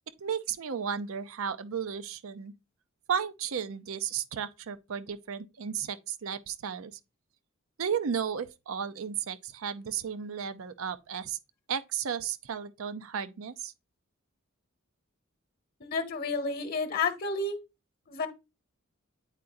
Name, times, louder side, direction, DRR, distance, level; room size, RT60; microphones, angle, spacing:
voice 1, 0.2-2.5 3.1-6.9 7.8-11.4 11.7-13.7, right 7 dB, 80° right, 0.5 m, -34 dB
voice 2, 15.8-17.6 18.1-18.3, left 4 dB, 45° left, 0.9 m, -30 dB
9.0 x 4.7 x 2.5 m
head